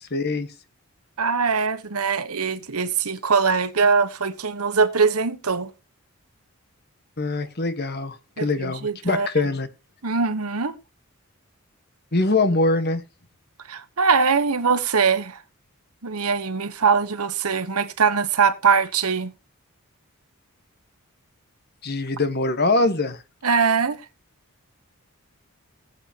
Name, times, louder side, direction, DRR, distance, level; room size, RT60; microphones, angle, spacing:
voice 1, 0.0-0.5 7.2-9.7 12.1-13.0 21.8-23.2, left 2 dB, 45° left, 1.4 m, -23 dB
voice 2, 1.2-5.7 8.4-9.3 10.0-10.7 13.7-15.4 16.0-19.3 23.4-24.0, right 5 dB, 85° right, 1.2 m, -22 dB
19.0 x 8.1 x 2.9 m
head